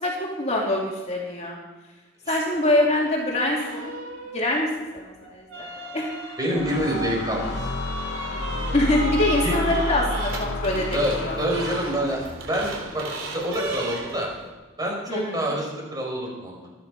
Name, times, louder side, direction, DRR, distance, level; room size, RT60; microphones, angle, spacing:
voice 1, 0.0-1.6 2.3-3.9 4.3-4.7 4.9-6.1 8.7-11.4 15.1-15.5, left 1 dB, 35° left, -2 dB, 2.8 m, -24 dB
sound 1, 2.5-3.1 3.6-14.5, right 2 dB, 70° right, 3.5 m, -35 dB
voice 2, 6.4-7.7 9.4-9.6 10.9-12.2 12.5-14.3 14.8-16.7, equal, 20° right, -2 dB, 6.0 m, -27 dB
sound 2, 6.6-12.3, left 2 dB, 55° left, 1.0 m, -30 dB
25.5 x 10.0 x 5.5 m, 1.2 s
head